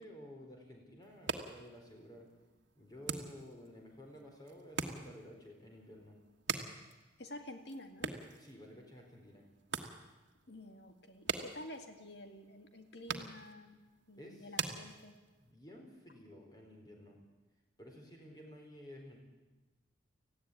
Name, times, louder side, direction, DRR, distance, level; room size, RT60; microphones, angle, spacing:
voice 1, 0.0-2.3 2.8-6.2 8.4-9.5 14.2-14.5 15.4-17.2 17.8-19.2, equal, 20° left, 1 dB, 4.2 m, -53 dB
sound 1, 1.0-15.5, right 5 dB, 75° right, 1.5 m, -45 dB
voice 2, 7.2-8.1 10.5-13.8 14.1-15.2, left 1 dB, 60° left, 6 dB, 2.0 m, -50 dB
18.0 x 15.0 x 9.9 m, 1.1 s
head